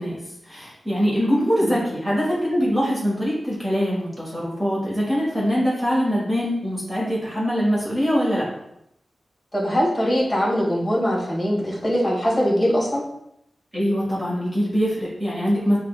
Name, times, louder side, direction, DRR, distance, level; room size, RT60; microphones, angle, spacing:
voice 1, 0.0-8.4 13.7-15.8, equal, 20° right, -6 dB, 1.5 m, -23 dB
voice 2, 9.5-13.0, equal, 15° left, -5 dB, 1.6 m, -22 dB
7.4 x 2.7 x 2.4 m, 0.79 s
wide cardioid pair, 140°, 0 cm